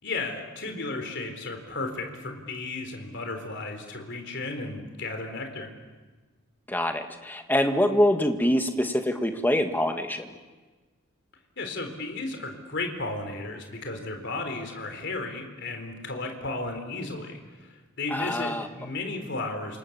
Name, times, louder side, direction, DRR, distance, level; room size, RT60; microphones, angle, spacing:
voice 1, 0.0-5.7 11.6-19.8, left 3 dB, 55° left, 5 dB, 3.7 m, -34 dB
voice 2, 6.7-10.3 18.1-18.7, left 1 dB, 10° left, 5 dB, 1.8 m, -25 dB
29.0 x 26.5 x 7.2 m, 1.3 s
head